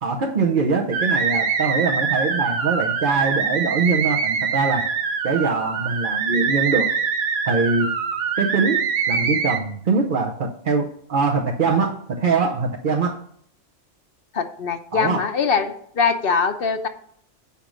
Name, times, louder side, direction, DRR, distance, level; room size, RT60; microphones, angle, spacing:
voice 1, 0.0-4.9 5.2-6.9 7.5-7.9 8.4-13.2 14.9-15.2, right 4 dB, 50° right, 0 dB, 0.9 m, -22 dB
sound 1, 0.9-9.6, right 6 dB, 85° right, 1.2 m, -24 dB
voice 2, 14.3-16.9, left 5 dB, 55° left, 8 dB, 0.9 m, -22 dB
7.0 x 5.2 x 6.1 m, 0.64 s
omnidirectional pair, 1.3 m